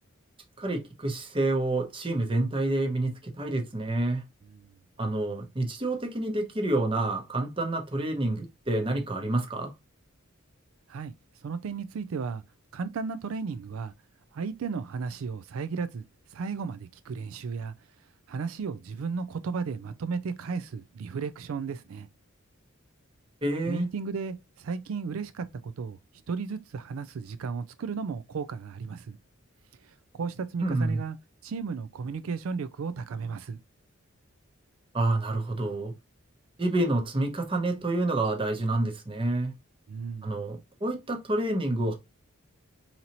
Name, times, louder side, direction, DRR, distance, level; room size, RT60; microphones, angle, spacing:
voice 1, 0.6-4.2 5.0-9.7 23.4-23.9 30.6-31.0 34.9-35.9 36.6-39.5 40.2-41.9, right 2 dB, 25° right, 0.8 m, -28 dB
voice 2, 11.4-12.4 12.7-13.9 14.3-17.7 18.3-22.1 23.7-26.0 26.3-29.2 29.8-31.2 31.4-33.6 39.9-40.3, right 5 dB, 85° right, 0.4 m, -34 dB
4.0 x 2.9 x 2.8 m
head